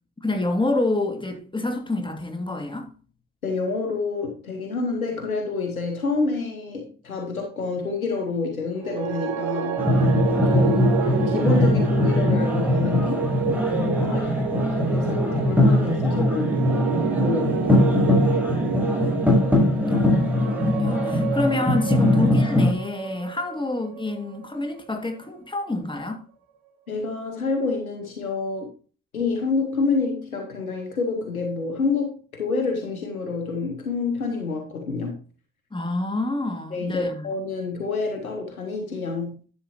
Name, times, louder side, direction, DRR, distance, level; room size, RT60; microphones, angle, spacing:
voice 1, 0.2-2.9 10.3-10.9 19.8-26.2 35.7-37.3, left 2 dB, 10° left, 2.4 m, -28 dB
voice 2, 3.4-9.9 10.4-16.6 17.0-17.5 26.9-28.7 29.1-35.2 36.7-39.4, left 4 dB, 85° left, 1.0 m, -28 dB
sound 1, 8.8-25.1, right 8 dB, 55° right, 1.4 m, -30 dB
sound 2, 9.8-22.7, left 1 dB, 5° right, 4.5 m, -21 dB
11.0 x 7.6 x 2.9 m
figure-of-eight pair, 40°, 41 cm